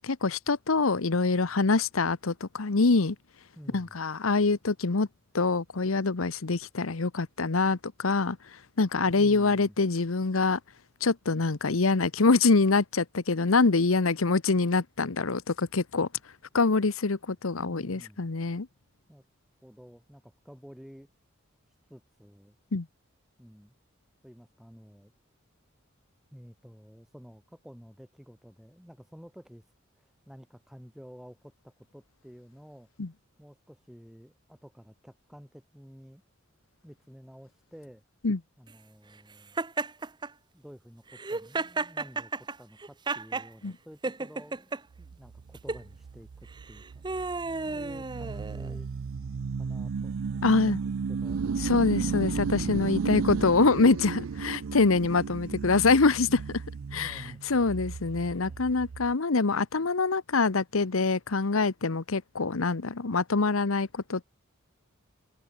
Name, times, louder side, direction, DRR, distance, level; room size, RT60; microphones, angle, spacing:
voice 1, 0.0-3.2 3.7-5.1 5.3-8.4 8.8-10.6 11.0-16.1 16.5-18.7 22.7-22.9 33.0-33.1 38.2-38.4 43.6-43.7 50.4-50.8 51.6-56.4 56.9-57.2 57.5-64.2, left 3 dB, 90° left, 1.0 m, -25 dB
voice 2, 3.5-4.0 8.9-9.7 17.6-18.4 19.1-19.3 19.6-21.1 21.7-22.6 23.4-23.7 24.2-25.1 26.3-32.9 33.4-36.2 36.8-38.0 38.6-39.6 40.5-47.3 47.7-48.9 49.6-51.5 56.9-57.4 58.4-58.6, equal, ahead, 4.5 m, -51 dB
Laughter, 39.6-40.3 41.1-43.5 44.0-44.8 45.5-45.8 46.6-48.8, right 3 dB, 20° right, 0.7 m, -33 dB
sound 1, 45.0-59.1, right 5 dB, 85° right, 0.5 m, -34 dB
open air
head